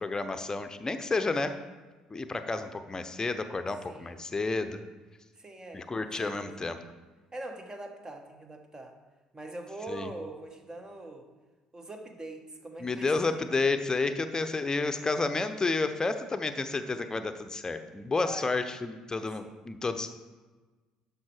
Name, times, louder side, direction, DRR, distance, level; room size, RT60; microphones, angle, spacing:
voice 1, 0.0-1.6 2.1-4.8 5.7-6.8 9.9-10.1 12.8-20.1, left 3 dB, 20° left, 9 dB, 0.8 m, -31 dB
voice 2, 3.9-4.3 5.4-6.6 7.3-8.9 9.3-11.3 11.7-13.5 18.1-18.5 19.1-19.5, right 2 dB, 20° right, 5 dB, 1.3 m, -43 dB
12.0 x 5.6 x 4.5 m, 1.3 s
figure-of-eight pair, 50°, 3 cm